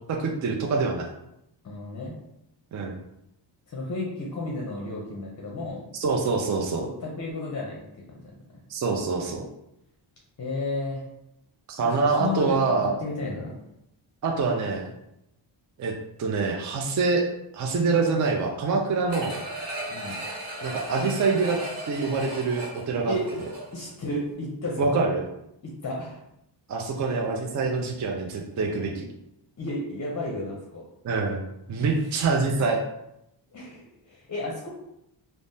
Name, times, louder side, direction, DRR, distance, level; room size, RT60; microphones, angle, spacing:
voice 1, 0.1-1.1 2.7-2.9 6.0-6.8 8.7-9.4 11.7-13.0 14.2-14.9 15.8-15.9 16.2-17.2 17.5-19.3 20.6-21.6 21.9-23.1 24.8-25.3 26.7-29.0 31.0-32.8, right 4 dB, 40° right, 1 dB, 0.4 m, -25 dB
voice 2, 1.6-2.1 3.7-5.8 6.8-7.8 8.5-8.6 10.4-11.0 11.8-12.5 13.0-13.5 19.9-20.2 23.1-23.2 23.7-24.9 25.6-26.2 27.0-27.1 29.6-30.8 31.9-32.0 33.5-34.7, left 2 dB, 35° left, -2 dB, 0.6 m, -33 dB
sound 1, 19.1-23.9 24.3-24.4, right 1 dB, 55° right, 1.0 m, -36 dB
3.3 x 2.0 x 2.6 m, 0.83 s
cardioid pair, 100°, 49 cm